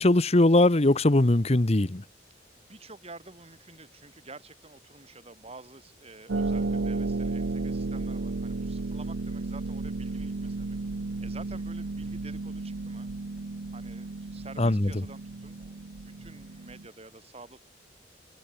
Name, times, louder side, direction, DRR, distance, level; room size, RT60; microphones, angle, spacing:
voice 1, 0.0-2.0 14.6-14.9, left 2 dB, 35° left, 1.0 m, -21 dB
voice 2, 2.6-10.8 11.2-13.1 13.7-17.6, right 3 dB, 35° right, 5.0 m, -49 dB
Harp, 6.3-16.9, right 3 dB, 85° right, 0.8 m, -33 dB
head